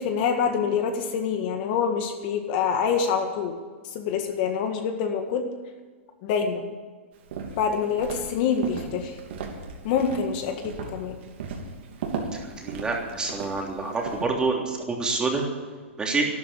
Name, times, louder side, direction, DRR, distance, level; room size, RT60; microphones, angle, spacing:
voice 1, 0.0-3.5 3.9-5.5 6.2-6.7 7.6-9.2 9.8-11.2, left 6 dB, 45° left, 5 dB, 1.8 m, -26 dB
Walk footsteps, 7.2-14.2, right 5 dB, 60° right, 3.0 m, -36 dB
voice 2, 12.3-15.4 16.0-16.2, right 3 dB, 10° right, 0 dB, 3.1 m, -27 dB
13.0 x 11.5 x 8.6 m, 1.5 s
hypercardioid pair, 135°, 7 cm